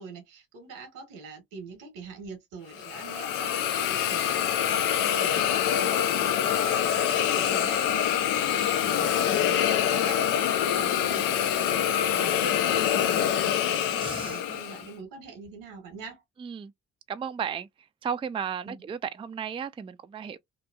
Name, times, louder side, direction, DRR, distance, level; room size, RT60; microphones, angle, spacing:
voice 1, 0.0-16.2 18.6-18.8, right 5 dB, 85° right, 1.0 m, -44 dB
Hiss, 2.7-14.9, left 10 dB, 85° left, 0.5 m, -25 dB
voice 2, 14.0-14.4 16.4-16.7 17.1-17.7 18.0-20.4, right 7 dB, 20° right, 0.3 m, -34 dB
2.8 x 2.1 x 2.2 m
supercardioid pair, 45°, 32 cm